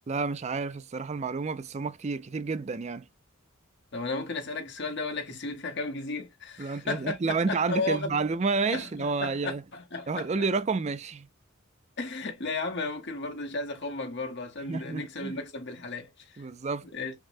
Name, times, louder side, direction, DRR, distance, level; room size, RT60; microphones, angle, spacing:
voice 1, 0.1-3.1 6.6-9.6 10.1-11.3 14.6-15.3 16.4-16.9, right 4 dB, 30° right, 0.4 m, -30 dB
voice 2, 3.9-8.1 8.7-10.3 12.0-16.4 16.9-17.1, left 3 dB, 55° left, 0.9 m, -34 dB
5.9 x 2.1 x 2.6 m
head